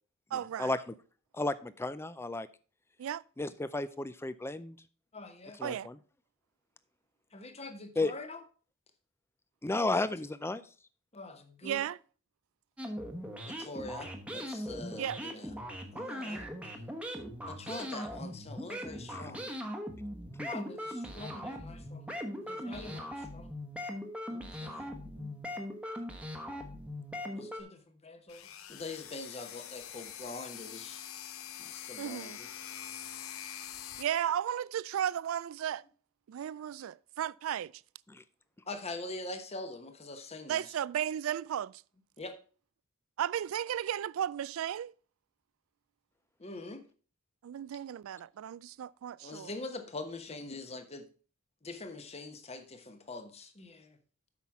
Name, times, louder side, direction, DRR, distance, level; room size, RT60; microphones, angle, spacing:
voice 1, 0.3-0.7 3.0-3.2 5.6-5.9 11.6-12.0 15.0-15.2 32.0-32.4 34.0-35.8 36.3-37.8 40.5-41.8 43.2-44.9 47.4-49.5, right 10 dB, 75° right, 0.3 m, -34 dB
voice 2, 1.3-2.5 3.4-4.8 5.6-6.0 8.0-8.1 9.6-10.6 19.1-19.2 20.4-20.5 38.1-38.2, left 2 dB, 10° left, 0.4 m, -33 dB
voice 3, 5.1-5.6 7.3-8.4 9.7-9.9 11.1-11.8 13.4-15.5 15.9-16.5 17.5-19.5 20.4-22.1 22.4-23.5 24.3-25.3 27.3-31.1 31.6-32.5 38.7-40.7 42.2-42.3 46.4-46.8 49.2-51.1 51.6-54.0, left 2 dB, 30° left, 1.1 m, -44 dB
sound 1, 12.8-27.6, equal, 5° right, 1.1 m, -40 dB
sound 2, 28.3-34.0, left 10 dB, 75° left, 0.7 m, -45 dB
8.2 x 5.7 x 4.7 m
head